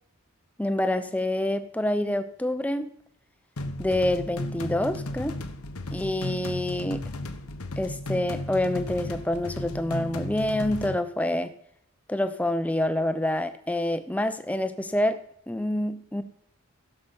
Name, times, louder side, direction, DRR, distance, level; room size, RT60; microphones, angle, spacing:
voice 1, 0.6-2.9 3.8-5.4 5.9-7.0 7.8-11.5 12.1-15.2 15.5-16.2, left 1 dB, 5° left, 10 dB, 0.6 m, -27 dB
sound 1, 3.6-10.9, left 1 dB, 80° left, 1.1 m, -34 dB
16.0 x 6.9 x 5.3 m, 0.70 s
head